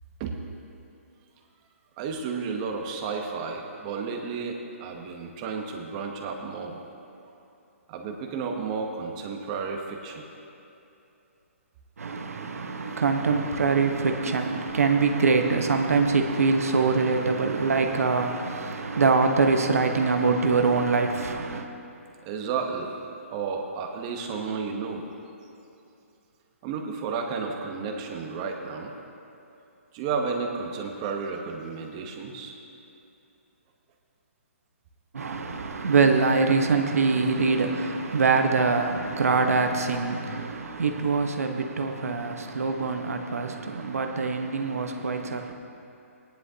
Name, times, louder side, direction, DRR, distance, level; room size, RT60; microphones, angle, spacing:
voice 1, 2.0-6.8 7.9-10.3 22.2-23.0 23.3-25.0 26.6-28.9 29.9-32.5, right 5 dB, 25° right, 1.0 m, -32 dB
voice 2, 12.0-21.7 35.1-45.5, right 4 dB, 85° right, 1.1 m, -24 dB
18.0 x 10.5 x 2.8 m
hypercardioid pair, 160°, 8 cm